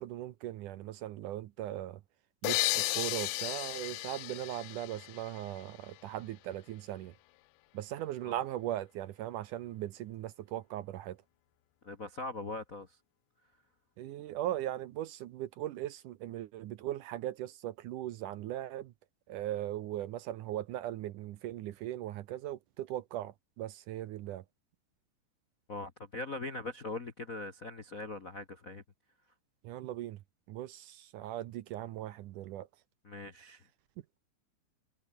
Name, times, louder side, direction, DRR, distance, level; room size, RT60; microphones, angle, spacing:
voice 1, 0.0-2.0 2.4-7.1 7.7-11.2 14.0-18.9 19.3-24.4 29.6-30.2 30.5-32.7, right 13 dB, 75° right, 2.2 m, -39 dB
sound 1, 2.4-6.0, left 20 dB, 80° left, 2.0 m, -34 dB
voice 2, 11.8-12.9 25.7-28.8 33.0-33.6, left 2 dB, 45° left, 1.0 m, -41 dB
omnidirectional pair, 4.2 m